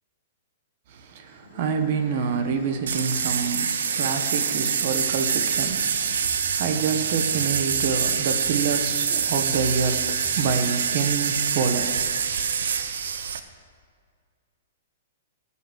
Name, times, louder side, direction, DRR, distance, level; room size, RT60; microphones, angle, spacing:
voice 1, 0.9-12.1, right 5 dB, 40° right, 7 dB, 1.1 m, -27 dB
sound 1, 1.3-6.7, left 3 dB, 55° left, 2.6 m, -49 dB
sound 2, 2.9-13.4, right 7 dB, 85° right, 0.8 m, -25 dB
sound 3, 4.7-13.2, right 3 dB, 55° right, 1.7 m, -42 dB
14.5 x 5.7 x 7.9 m, 2.1 s
hypercardioid pair, 165°, 0 cm